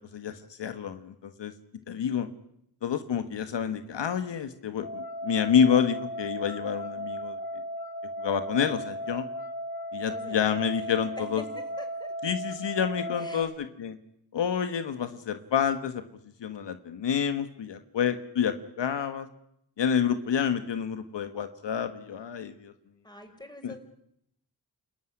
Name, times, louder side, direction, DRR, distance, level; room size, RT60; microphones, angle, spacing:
voice 1, 0.1-1.5 1.9-2.3 2.8-7.4 8.2-9.3 9.9-11.4 12.2-14.0 14.3-16.0 16.4-19.3 19.8-22.7 23.6-23.7, left 7 dB, 80° left, 9 dB, 1.6 m, -28 dB
sound 1, 4.8-13.4, equal, 55° left, 3.6 m, -36 dB
voice 2, 10.1-11.3 11.8-12.1 13.2-13.5 23.0-23.8, left 1 dB, 10° left, 5 dB, 6.3 m, -46 dB
28.5 x 15.0 x 9.9 m, 0.78 s
cardioid pair, 55°, 42 cm